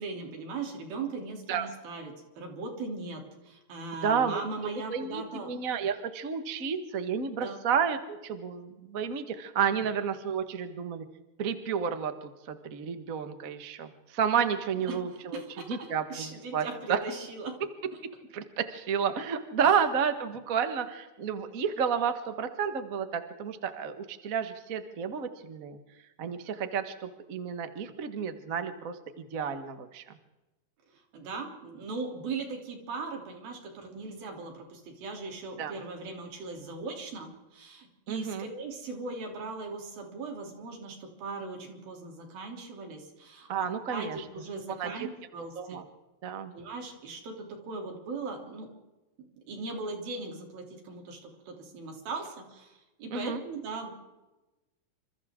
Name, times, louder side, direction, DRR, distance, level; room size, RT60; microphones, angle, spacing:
voice 1, 0.0-5.5 7.4-7.6 14.9-17.6 19.6-19.8 31.1-43.5 43.9-45.8 46.5-48.7 49.2-53.9, right 3 dB, 90° right, 2 dB, 5.1 m, -39 dB
voice 2, 4.0-4.4 4.9-11.0 11.4-12.1 12.5-15.4 15.7-17.0 18.3-25.8 26.2-30.0 35.6-35.7 38.1-38.5 43.5-44.2 44.8-44.9 45.6-45.8 46.2-46.5 53.1-53.4, right 7 dB, 65° right, 8 dB, 0.8 m, -31 dB
28.0 x 26.5 x 3.7 m, 1.0 s
omnidirectional pair, 4.1 m